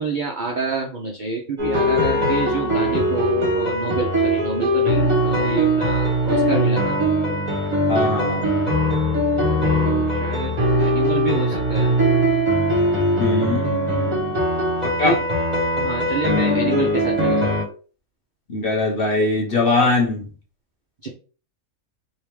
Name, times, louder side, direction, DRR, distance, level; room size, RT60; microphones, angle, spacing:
voice 1, 0.0-7.0 9.3-12.0 14.0-14.7 15.0-15.2 15.8-17.6 19.6-19.9 21.0-21.1, right 4 dB, 55° right, 0 dB, 0.5 m, -28 dB
sound 1, 1.6-17.6, equal, 35° right, 0.9 m, -20 dB
voice 2, 7.9-8.5 13.2-13.8 14.8-15.1 18.5-20.3, left 2 dB, 45° left, -2 dB, 0.9 m, -21 dB
3.4 x 2.7 x 3.0 m, 0.38 s
omnidirectional pair, 1.5 m